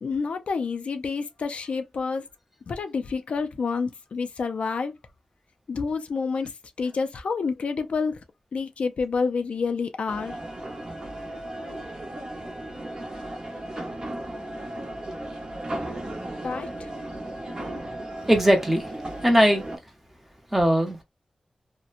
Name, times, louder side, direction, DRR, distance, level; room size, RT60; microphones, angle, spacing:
voice 1, 0.0-2.3 2.7-4.9 5.7-6.5 6.8-8.2 8.5-10.4 16.4-16.9, left 5 dB, 80° left, 0.4 m, -28 dB
sound 1, 10.1-19.8, right 1 dB, 45° right, 0.9 m, -35 dB
voice 2, 18.3-18.9 19.2-19.8 20.5-21.0, equal, 10° right, 0.7 m, -20 dB
2.8 x 2.1 x 2.4 m
wide cardioid pair, 120°, 2 cm